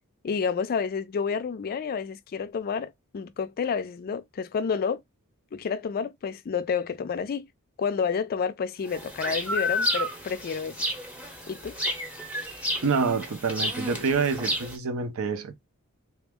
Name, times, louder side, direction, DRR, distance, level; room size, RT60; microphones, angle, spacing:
voice 1, 0.2-5.0 5.5-7.5 7.8-10.8 11.5-11.8, left 6 dB, 40° left, 0.3 m, -29 dB
sound 1, 8.9-14.8, left 1 dB, 5° right, 0.7 m, -31 dB
voice 2, 12.8-15.5, right 5 dB, 65° right, 0.6 m, -27 dB
3.4 x 2.0 x 3.4 m
head